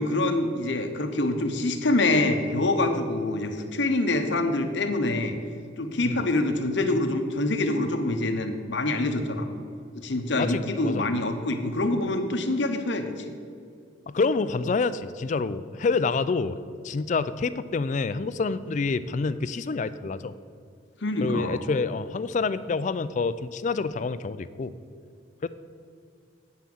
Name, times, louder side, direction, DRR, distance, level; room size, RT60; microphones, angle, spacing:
voice 1, 0.0-5.3 5.8-9.5 10.0-13.3 21.0-21.6, left 2 dB, 65° left, 6 dB, 0.9 m, -25 dB
voice 2, 10.4-11.1 14.1-16.6 16.8-20.3 21.2-24.7 25.4-25.5, left 4 dB, 40° left, 14 dB, 0.3 m, -27 dB
8.3 x 5.7 x 7.7 m, 2.2 s
head